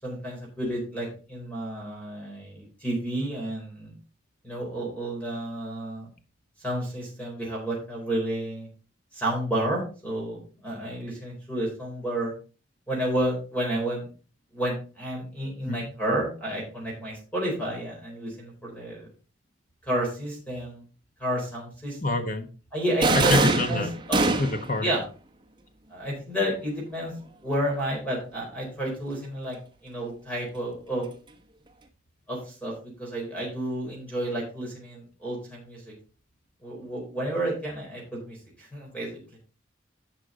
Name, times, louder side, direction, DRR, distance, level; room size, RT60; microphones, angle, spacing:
voice 1, 0.0-3.9 4.4-6.1 6.6-8.7 9.1-12.3 12.9-14.1 14.5-19.1 19.8-20.8 21.2-22.2 22.7-24.4 24.8-25.0 25.9-27.1 27.4-29.6 29.8-31.1 32.3-32.7 33.0-35.9 36.6-39.2, right 1 dB, 5° left, -3 dB, 4.2 m, -31 dB
voice 2, 22.0-22.5 23.1-23.9 24.4-24.9, left 2 dB, 45° left, 7 dB, 1.1 m, -26 dB
sound 1, 23.0-24.8, right 3 dB, 25° right, 1.1 m, -23 dB
11.5 x 6.2 x 3.9 m, 0.36 s
head